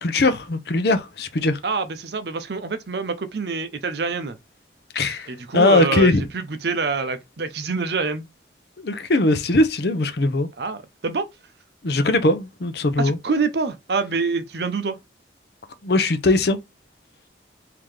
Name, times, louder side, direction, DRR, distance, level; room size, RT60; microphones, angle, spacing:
voice 1, 0.0-1.6 4.9-6.3 8.8-10.5 11.8-13.2 15.8-16.6, left 2 dB, 60° left, 0.6 m, -20 dB
voice 2, 1.6-4.4 5.3-8.2 10.6-11.3 13.0-15.0, right 4 dB, 60° right, 0.6 m, -26 dB
3.7 x 2.8 x 3.3 m
head